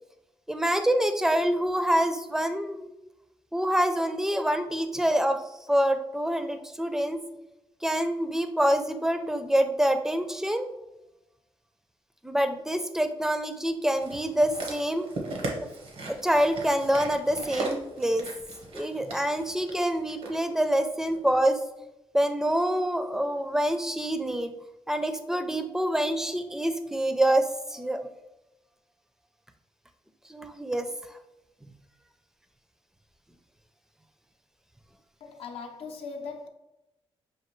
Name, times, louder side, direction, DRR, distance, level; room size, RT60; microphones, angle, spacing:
voice 1, 0.5-2.9 3.5-5.4 5.7-7.2 7.8-10.7 12.2-15.1 16.1-18.3 18.7-21.6 22.1-24.5 24.9-28.0 30.3-30.9 31.6-31.7, right 1 dB, 5° right, 0.4 m, -26 dB
sound 1, 14.0-20.4 21.1-21.2, right 2 dB, 80° right, 1.0 m, -37 dB
voice 2, 35.2-36.5, left 5 dB, 75° left, 0.6 m, -39 dB
5.8 x 2.6 x 3.1 m
cardioid pair, 95°, 10 cm